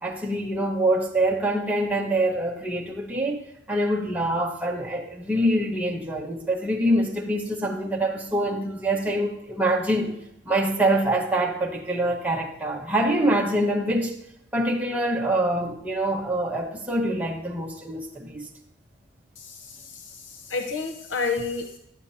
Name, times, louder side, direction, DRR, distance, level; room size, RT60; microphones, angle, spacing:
voice 1, 0.0-3.4 3.7-10.1 10.4-14.1 14.5-18.5, right 1 dB, 10° right, -2 dB, 1.2 m, -25 dB
voice 2, 19.4-21.8, left 4 dB, 85° left, 5 dB, 0.8 m, -31 dB
11.5 x 9.5 x 2.8 m, 0.79 s
head